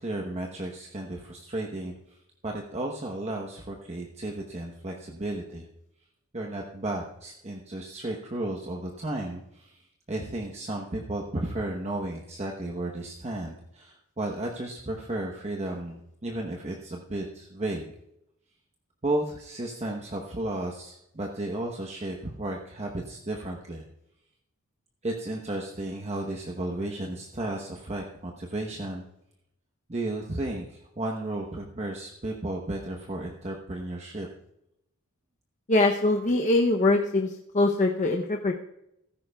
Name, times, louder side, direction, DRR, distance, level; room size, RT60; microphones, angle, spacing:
voice 1, 0.0-2.2 2.4-5.7 6.3-17.9 19.0-23.8 25.0-29.0 29.9-34.3, right 1 dB, 30° right, 0 dB, 1.0 m, -33 dB
voice 2, 35.7-38.5, left 2 dB, 35° left, 2 dB, 0.7 m, -23 dB
15.5 x 14.0 x 2.3 m, 0.82 s
head